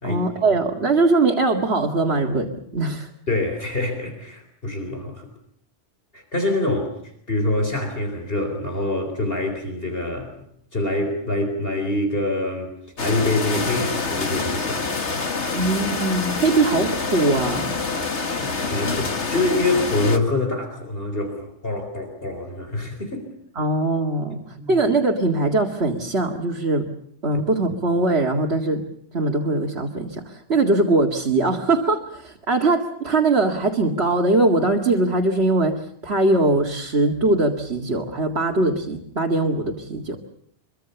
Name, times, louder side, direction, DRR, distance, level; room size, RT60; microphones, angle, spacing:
voice 1, 0.0-3.1 15.5-17.8 23.6-24.4 24.7-26.9 27.2-28.8 29.1-40.2, right 2 dB, 65° right, 1 dB, 2.3 m, -21 dB
voice 2, 3.3-5.3 6.1-6.9 7.3-10.3 10.7-12.7 13.0-14.9 18.3-23.2 24.3-24.8 27.3-27.4, left 2 dB, 55° left, 5 dB, 4.3 m, -25 dB
sound 1, 13.0-20.2, left 4 dB, 80° left, 2.2 m, -26 dB
25.0 x 23.5 x 6.9 m, 0.67 s
omnidirectional pair, 1.2 m